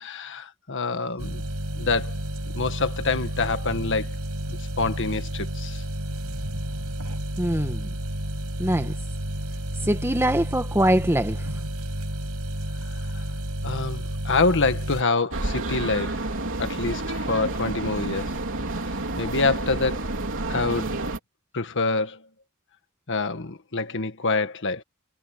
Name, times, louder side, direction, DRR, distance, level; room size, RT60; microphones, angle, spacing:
voice 1, 0.0-1.4 1.8-2.2 2.5-4.1 4.5-5.8 13.1-13.2 13.6-16.3 16.6-18.3 19.2-20.0 20.5-21.0 21.5-22.2 23.1-24.8, left 3 dB, 55° left, 1.6 m, -26 dB
sound 1, 1.2-15.0, right 1 dB, 90° right, 7.6 m, -31 dB
voice 2, 7.4-7.9 8.6-8.9 9.8-11.5, right 1 dB, 10° right, 1.8 m, -23 dB
sound 2, 15.3-21.2, right 2 dB, 60° right, 3.8 m, -29 dB
head